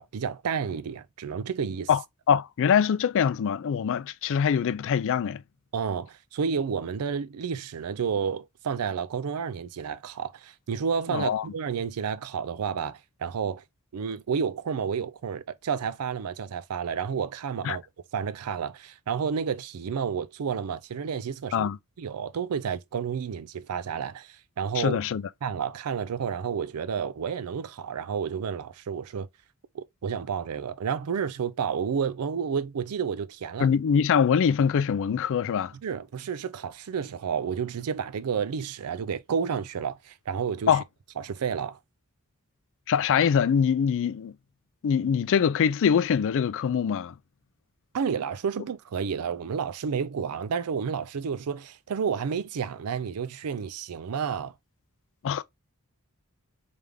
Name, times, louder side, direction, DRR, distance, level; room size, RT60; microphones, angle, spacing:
voice 1, 0.0-1.9 5.7-13.6 13.9-17.8 18.1-21.7 22.0-25.0 25.4-29.3 29.7-33.7 35.8-40.7 41.2-41.8 47.9-54.5, right 6 dB, 85° right, 0.4 m, -30 dB
voice 2, 2.3-5.4 11.1-11.5 17.6-17.8 21.5-21.8 24.7-25.2 33.6-35.7 40.7-40.8 42.9-44.3 44.8-47.1 55.2-55.4, left 7 dB, 60° left, 0.3 m, -23 dB
3.4 x 3.3 x 3.5 m
head